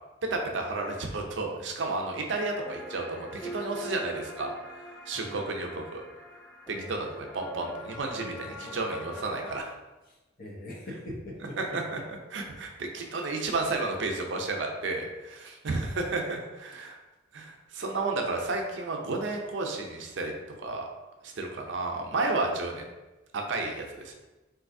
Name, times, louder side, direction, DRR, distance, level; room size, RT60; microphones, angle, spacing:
voice 1, 0.3-4.6 5.1-6.0 6.7-9.7 11.4-17.0 17.3-20.3 20.6-20.9 21.2-22.8 23.3-24.1, right 3 dB, 65° right, 2 dB, 0.5 m, -32 dB
sound 1, 2.4-9.6, equal, 5° left, 0.3 m, -43 dB
voice 2, 6.7-7.1 8.2-8.7 10.4-11.8, left 1 dB, 50° left, -2 dB, 0.7 m, -42 dB
4.0 x 2.6 x 2.6 m, 1.1 s
head